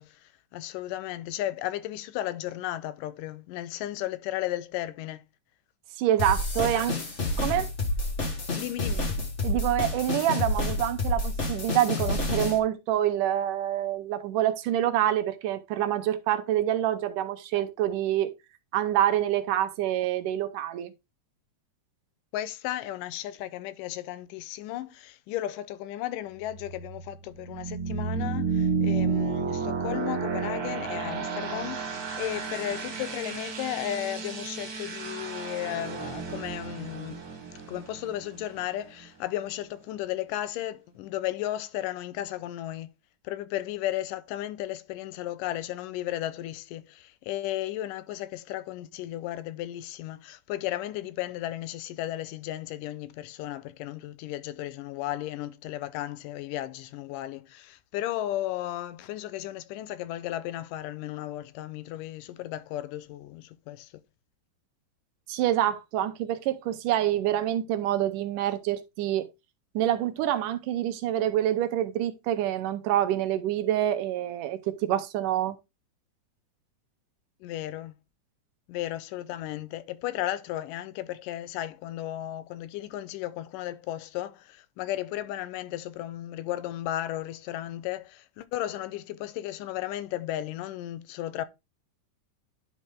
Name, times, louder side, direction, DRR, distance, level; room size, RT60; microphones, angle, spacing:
voice 1, 0.0-5.2 6.8-6.9 8.6-9.1 22.3-37.2 37.7-42.9 43.2-63.9 77.4-78.0 78.7-91.5, left 13 dB, 80° left, 2.2 m, -34 dB
voice 2, 6.0-6.9 7.4-7.7 9.4-18.3 18.7-20.9 65.3-69.3 69.8-75.6, right 12 dB, 80° right, 2.2 m, -26 dB
sound 1, 6.2-12.6, left 2 dB, 45° left, 0.8 m, -29 dB
sound 2, 26.4-39.1, right 5 dB, 45° right, 2.7 m, -32 dB
10.5 x 4.2 x 3.5 m
omnidirectional pair, 3.9 m